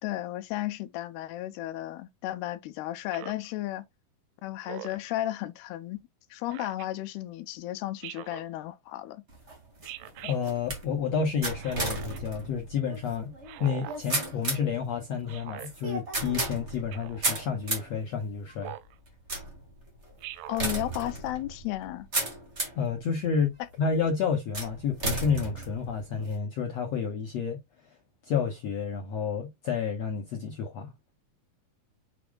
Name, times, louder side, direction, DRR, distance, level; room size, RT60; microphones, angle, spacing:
voice 1, 0.0-3.9 4.4-6.0 6.3-9.2 20.5-22.1, left 15 dB, 90° left, 2.8 m, -34 dB
Speech synthesizer, 3.1-3.5 4.6-5.1 6.5-6.9 8.0-8.5 9.8-10.4 11.6-12.2 13.4-14.0 15.3-15.7 16.9-17.2 18.6-18.9 20.2-20.7, right 13 dB, 85° right, 2.8 m, -42 dB
sound 1, 9.3-22.9 23.5-23.9 24.5-26.4, right 2 dB, 30° right, 1.4 m, -35 dB
voice 2, 10.2-13.3 13.6-18.7 22.7-27.6 28.2-30.9, left 6 dB, 65° left, 1.7 m, -30 dB
6.8 x 6.2 x 2.3 m
omnidirectional pair, 4.5 m